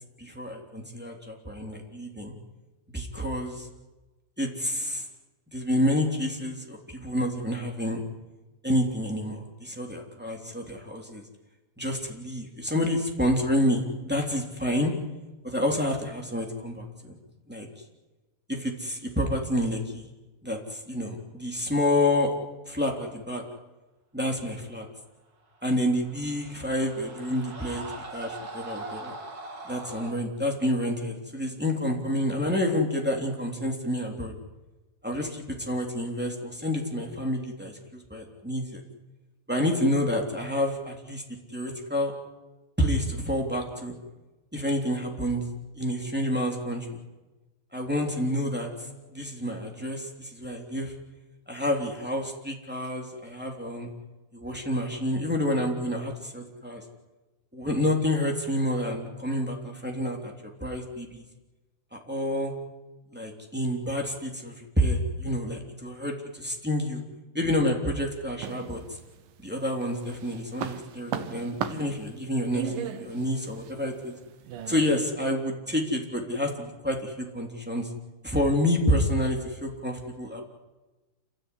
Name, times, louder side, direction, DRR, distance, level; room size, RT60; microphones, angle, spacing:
voice 1, 0.2-2.3 2.9-3.7 4.4-5.0 5.5-8.0 8.6-11.2 11.8-14.9 15.4-17.2 17.5-17.7 18.5-20.1 20.4-22.3 22.7-23.4 24.1-24.9 25.6-27.8 28.1-29.1 29.6-34.3 35.0-38.8 39.5-41.2 41.5-42.1 42.8-43.9 44.5-45.4 45.8-47.0 47.7-48.7 49.1-50.9 51.5-53.9 54.3-56.8 57.5-60.3 60.6-61.2 61.9-62.5 63.1-67.0 67.3-68.8 69.4-74.1 74.7-77.9 78.2-80.4, left 1 dB, 5° right, -1 dB, 2.3 m, -28 dB
sound 1, 25.7-30.2, right 3 dB, 40° right, 1.4 m, -41 dB
sound 2, 68.4-69.4 69.8-74.9, right 9 dB, 70° right, 2.5 m, -36 dB
28.0 x 15.5 x 9.7 m, 1.1 s
omnidirectional pair, 4.9 m